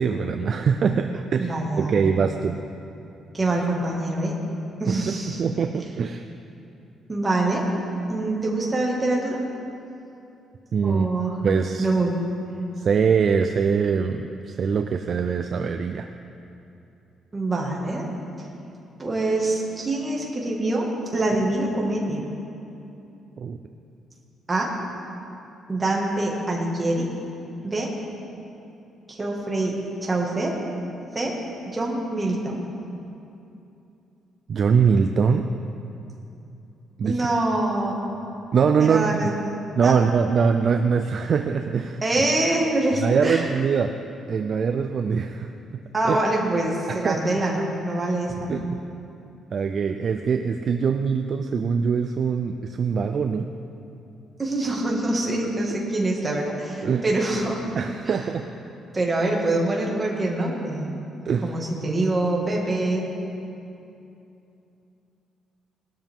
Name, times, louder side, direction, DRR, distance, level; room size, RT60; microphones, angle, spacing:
voice 1, 0.0-2.6 4.9-6.3 10.7-11.1 11.4-11.9 12.8-16.1 23.4-23.6 34.5-35.5 37.0-37.2 38.5-39.3 39.8-42.0 43.0-43.9 44.3-45.5 46.1-46.2 46.9-47.2 48.5-48.8 49.5-53.5 56.8-57.1 57.7-58.5 61.3-61.5, right 6 dB, 40° right, 6 dB, 0.4 m, -23 dB
voice 2, 1.4-2.0 3.3-4.4 4.8-5.4 7.1-7.6 8.1-9.4 10.8-11.4 11.8-12.2 17.3-18.1 18.4-18.5 19.0-20.9 21.1-22.2 24.5-24.7 25.7-27.1 27.6-27.9 29.1-30.5 31.1-31.3 31.7-32.6 37.0-38.0 38.8-39.5 39.8-39.9 42.0-43.5 45.9-48.5 54.4-57.7 58.1-58.2 58.9-60.9 61.4-63.1, right 2 dB, 15° right, -2 dB, 1.9 m, -25 dB
20.0 x 12.5 x 3.7 m, 2.8 s
cardioid pair, 175°, 0 cm